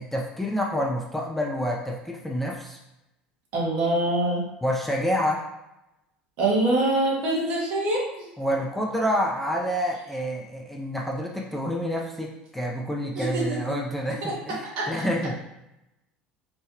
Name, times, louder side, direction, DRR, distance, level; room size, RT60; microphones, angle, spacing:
voice 1, 0.0-2.8 4.6-5.4 8.4-15.3, equal, 5° left, -2 dB, 0.5 m, -28 dB
voice 2, 3.5-4.4 6.4-8.3 13.2-13.6 14.2-14.3 14.8-15.0, right 2 dB, 60° right, -4 dB, 1.1 m, -24 dB
3.2 x 2.2 x 2.8 m, 0.90 s
hypercardioid pair, 70°, 4 cm